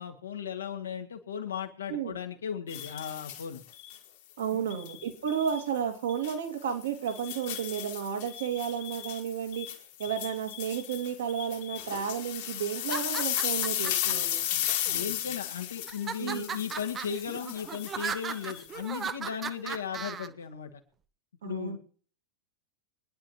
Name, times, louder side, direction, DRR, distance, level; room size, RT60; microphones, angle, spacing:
voice 1, 0.0-3.6 4.5-4.7 14.5-20.8 21.4-21.8, left 7 dB, 70° left, 4 dB, 2.1 m, -36 dB
sound 1, 2.7-4.0 4.7-5.6 6.1-6.3 6.8-19.0, left 12 dB, 50° left, 2.2 m, -35 dB
voice 2, 4.4-9.7 10.0-14.4 16.2-16.6 21.4-21.8, right 8 dB, 60° right, 4 dB, 2.2 m, -32 dB
sound 2, 12.8-14.1 14.9-15.4 15.9-20.3, right 6 dB, 20° right, 0.8 m, -37 dB
25.0 x 10.5 x 3.1 m, 0.43 s
figure-of-eight pair, 90°, 0 cm